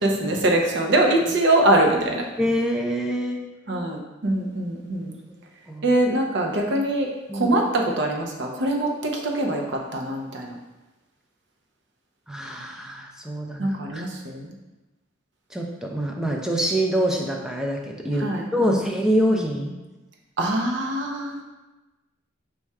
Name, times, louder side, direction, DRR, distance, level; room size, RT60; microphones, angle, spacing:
voice 1, 0.0-2.2 3.7-5.1 5.8-7.1 7.3-9.6 9.9-10.5 13.6-14.5 18.2-18.8 19.3-19.4 20.4-21.4, right 1 dB, 65° right, 1 dB, 0.7 m, -23 dB
voice 2, 2.4-3.4 5.7-5.9 7.3-7.6 12.3-14.1 15.5-19.7, equal, 5° right, 0 dB, 0.4 m, -25 dB
4.2 x 2.3 x 4.6 m, 1.1 s
head